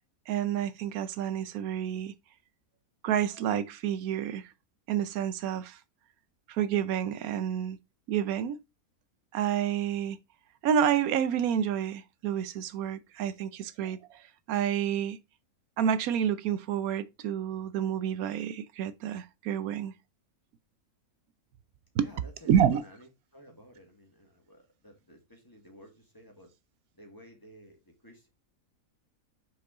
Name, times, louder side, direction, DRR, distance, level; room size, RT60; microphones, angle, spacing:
voice 1, 0.3-2.1 3.0-4.5 4.9-5.8 6.5-7.8 8.1-8.6 9.3-10.2 10.6-15.2 15.8-19.9 22.0-22.1 22.5-22.8, right 9 dB, 85° right, 1.1 m, -29 dB
voice 2, 22.0-26.5 26.9-28.3, equal, 15° left, 2.0 m, -53 dB
6.3 x 5.1 x 3.8 m
omnidirectional pair, 1.5 m